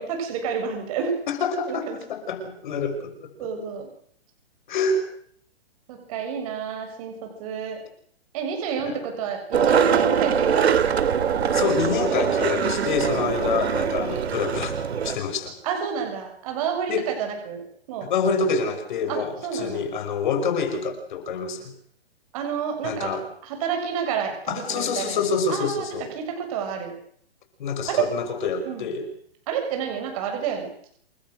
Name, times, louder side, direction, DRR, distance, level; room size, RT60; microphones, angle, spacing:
voice 1, 0.0-1.2 1.6-2.0 3.4-3.9 5.9-7.8 8.3-10.8 11.2-11.3 13.0-13.3 15.6-17.6 17.9-18.1 19.1-19.2 19.4-19.8 22.3-23.1 23.4-25.2 25.5-26.9 27.9-28.1 28.6-28.9 29.5-30.9, right 7 dB, 35° right, 3 dB, 7.1 m, -29 dB
voice 2, 1.3-3.2 4.7-5.0 8.8-9.0 11.5-14.7 15.0-15.6 16.9-17.1 18.0-21.7 22.8-23.2 24.5-26.1 27.6-29.1, left 4 dB, 50° left, 7 dB, 5.9 m, -26 dB
Skateboard, 9.5-15.2, right 7 dB, 85° right, 2.8 m, -23 dB
29.0 x 22.5 x 6.5 m, 0.63 s
hypercardioid pair, 165°, 31 cm